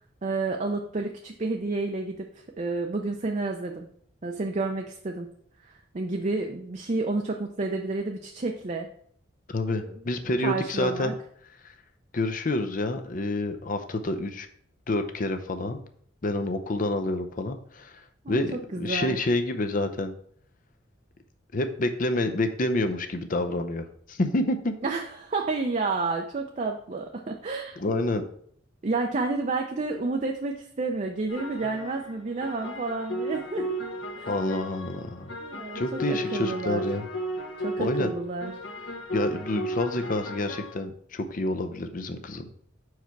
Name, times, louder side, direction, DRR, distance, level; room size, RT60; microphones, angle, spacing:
voice 1, 0.2-2.3 2.6-3.9 4.2-5.3 5.6-8.9 9.7-10.0 10.4-11.1 18.2-19.2 24.8-27.8 28.8-33.7 34.2-34.3 35.4-36.8 37.6-38.5, right 3 dB, 35° right, 2 dB, 0.5 m, -30 dB
voice 2, 9.5-11.2 11.6-11.7 12.1-14.5 14.9-15.8 16.2-20.1 21.5-24.7 27.8-28.2 34.3-35.3 35.7-37.0 37.8-38.1 39.1-42.5, left 2 dB, 45° left, 8 dB, 0.6 m, -28 dB
sound 1, 31.3-40.7, right 1 dB, 70° left, 1.3 m, -34 dB
5.6 x 4.8 x 4.5 m, 0.63 s
head